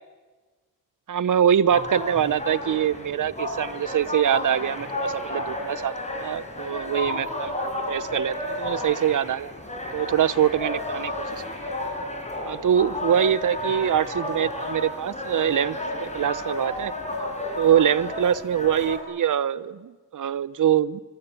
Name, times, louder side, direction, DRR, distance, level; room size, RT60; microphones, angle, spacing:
voice 1, 1.1-9.5 9.9-11.7 12.4-16.9 17.6-21.0, right 9 dB, 55° right, 18 dB, 0.9 m, -24 dB
sound 1, 1.7-19.0, left 1 dB, 20° left, 5.3 m, -32 dB
24.5 x 23.5 x 8.3 m, 1.3 s
wide cardioid pair, 120°, 38 cm